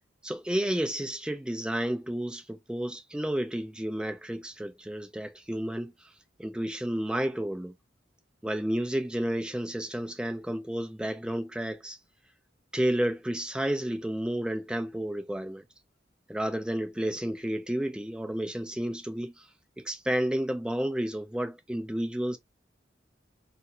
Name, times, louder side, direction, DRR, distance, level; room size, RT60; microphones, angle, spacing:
voice 1, 0.2-5.9 6.4-7.7 8.4-12.0 12.7-15.6 16.3-19.5 19.8-22.4, right 1 dB, 5° right, 0.4 m, -31 dB
4.0 x 2.0 x 2.7 m
head